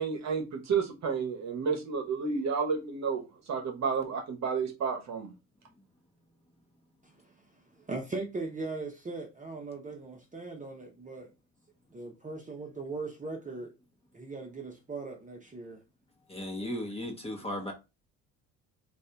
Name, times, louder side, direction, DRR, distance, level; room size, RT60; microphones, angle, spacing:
voice 1, 0.0-3.2 3.5-5.3, right 5 dB, 45° right, 1.1 m, -31 dB
voice 2, 7.9-11.3 11.9-13.7 14.1-15.8 16.5-16.7, right 3 dB, 20° right, 0.9 m, -39 dB
voice 3, 16.3-17.7, left 1 dB, 15° left, 1.1 m, -36 dB
2.6 x 2.5 x 3.4 m
hypercardioid pair, 65°, 37 cm